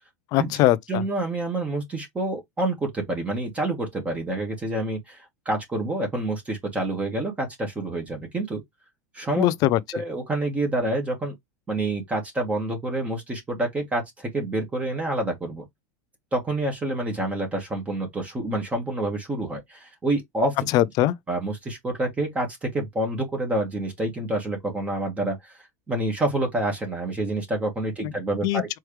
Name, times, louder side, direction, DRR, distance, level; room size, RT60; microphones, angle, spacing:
voice 1, 0.3-1.0 9.4-9.8 20.7-21.1 28.0-28.1 28.4-28.8, left 14 dB, 45° left, 0.5 m, -21 dB
voice 2, 0.9-8.6 9.1-9.5 9.9-11.3 11.7-15.6 16.3-20.7 21.3-25.6 25.9-28.7, right 1 dB, 15° right, 1.8 m, -28 dB
4.6 x 3.1 x 3.2 m
supercardioid pair, 145°, 9 cm